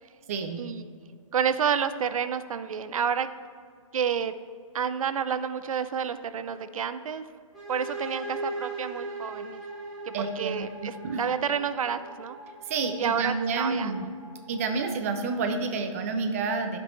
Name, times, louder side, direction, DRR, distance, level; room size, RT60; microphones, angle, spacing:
voice 1, 0.3-0.6 10.1-10.7 11.0-11.2 12.7-14.1 14.5-16.8, right 4 dB, 25° right, 5 dB, 0.5 m, -29 dB
voice 2, 1.3-3.3 3.9-4.3 4.7-7.3 7.7-9.6 10.1-12.4 13.0-14.1, right 7 dB, 80° right, 12 dB, 0.4 m, -29 dB
sound 1, 7.5-15.2, right 2 dB, ahead, 1.3 m, -40 dB
11.0 x 5.2 x 3.1 m, 2.2 s
hypercardioid pair, 165°, 18 cm